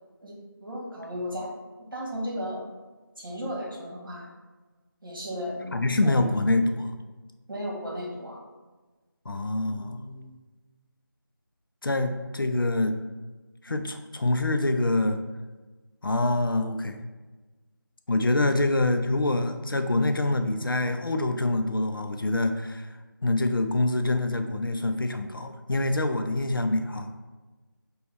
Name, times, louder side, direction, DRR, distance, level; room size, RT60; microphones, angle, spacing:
voice 1, 0.6-1.5 1.9-2.7 3.2-4.3 5.0-6.1 7.5-8.4 13.7-13.8, equal, 70° right, -3 dB, 1.4 m, -35 dB
voice 2, 5.7-6.9 9.3-10.4 11.8-12.9 13.6-15.2 16.0-17.0 18.1-22.9 23.2-27.1, left 2 dB, 70° left, 7 dB, 0.5 m, -25 dB
5.2 x 2.3 x 3.2 m, 1.3 s
figure-of-eight pair, 170°, 12 cm